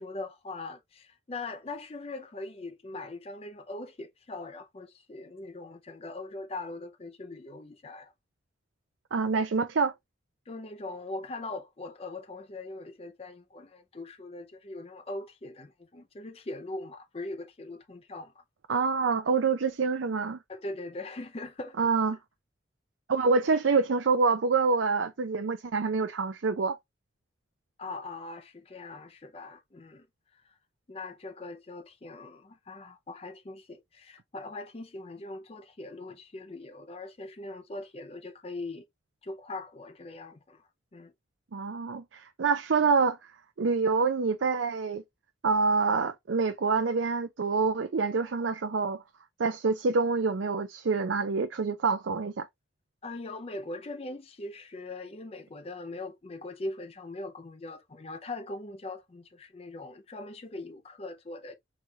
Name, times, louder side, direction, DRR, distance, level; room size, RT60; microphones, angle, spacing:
voice 1, 0.0-8.1 10.5-18.4 20.5-21.8 27.8-30.1 30.3-30.6 30.9-38.9 39.2-41.1 53.0-61.6, left 2 dB, 30° left, 0.5 m, -41 dB
voice 2, 9.1-9.9 18.7-20.4 21.8-22.2 23.1-26.8 41.5-43.3 43.6-45.0 45.4-49.0 49.4-52.5, right 4 dB, 85° right, 0.5 m, -26 dB
4.9 x 3.1 x 2.7 m
head